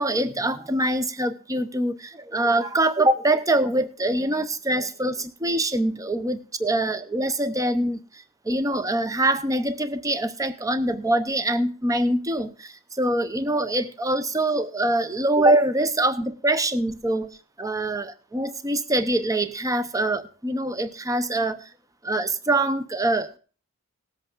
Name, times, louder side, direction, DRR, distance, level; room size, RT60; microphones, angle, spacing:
voice 1, 0.0-21.7 22.0-23.3, right 1 dB, 15° right, 11 dB, 0.7 m, -24 dB
18.5 x 8.1 x 3.7 m, 0.38 s
head